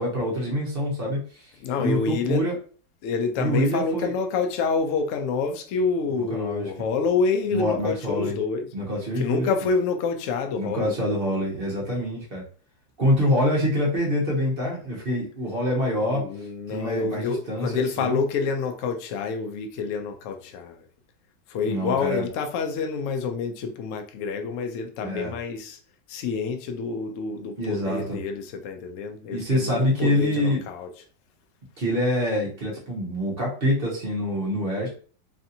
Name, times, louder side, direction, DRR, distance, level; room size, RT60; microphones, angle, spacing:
voice 1, 0.0-1.5 1.8-2.6 3.4-4.1 6.0-6.9 7.5-8.4 8.7-9.5 10.6-12.4 13.0-16.2 16.7-18.2 21.6-22.3 25.0-25.3 27.6-28.2 29.3-30.6 31.8-34.9, equal, 40° right, 0.8 m, -26 dB
voice 2, 1.6-2.4 3.0-8.7 9.2-10.9 16.0-20.7 21.5-25.8 26.1-30.9, left 5 dB, 85° left, 0.6 m, -27 dB
3.2 x 2.6 x 2.6 m
omnidirectional pair, 1.9 m